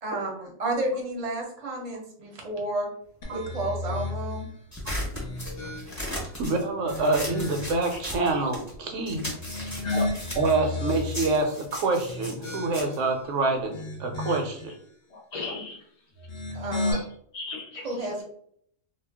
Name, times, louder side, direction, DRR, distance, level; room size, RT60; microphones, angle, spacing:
voice 1, 0.0-2.9 3.3-4.5 16.5-17.0 17.8-18.2, right 2 dB, 40° right, 0 dB, 0.6 m, -31 dB
sound 1, 3.2-4.5 5.1-6.2 6.7-7.8 9.3-11.4 11.9-13.1 13.5-14.7 16.1-16.9, left 2 dB, 55° left, 0.8 m, -33 dB
sound 2, 4.7-8.8 9.1-13.9, left 1 dB, 15° left, 0.7 m, -37 dB
voice 2, 6.0-9.3 10.4-14.7, right 3 dB, 70° right, 3 dB, 0.9 m, -27 dB
voice 3, 15.1-15.8 16.6-17.1 17.3-18.2, left 3 dB, 75° left, -3 dB, 0.4 m, -37 dB
2.3 x 2.1 x 3.3 m, 0.65 s
omnidirectional pair, 1.4 m